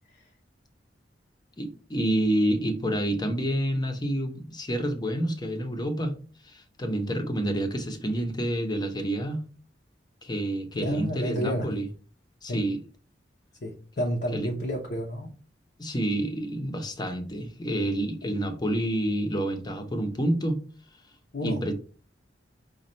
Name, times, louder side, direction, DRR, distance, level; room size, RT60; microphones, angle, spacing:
voice 1, 1.6-6.1 6.4-9.4 10.2-11.9 12.4-12.8 14.3-14.5 15.8-20.6 21.4-21.7, right 1 dB, 25° left, 0.7 m, -28 dB
voice 2, 10.8-11.7 12.5-12.6 13.6-15.3 21.3-21.7, equal, 60° left, 0.7 m, -30 dB
5.1 x 2.3 x 4.2 m
head